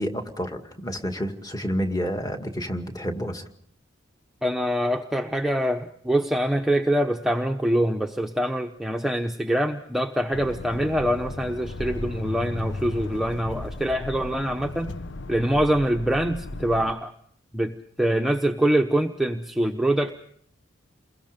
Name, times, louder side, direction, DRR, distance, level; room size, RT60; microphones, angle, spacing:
voice 1, 0.0-3.5, equal, 20° left, 5 dB, 2.2 m, -29 dB
voice 2, 4.4-14.9 15.3-17.1 17.5-20.1, right 1 dB, ahead, 3 dB, 0.9 m, -24 dB
sound 1, 10.3-16.9, left 2 dB, 70° left, 0.8 m, -35 dB
29.5 x 22.0 x 5.2 m, 0.66 s
head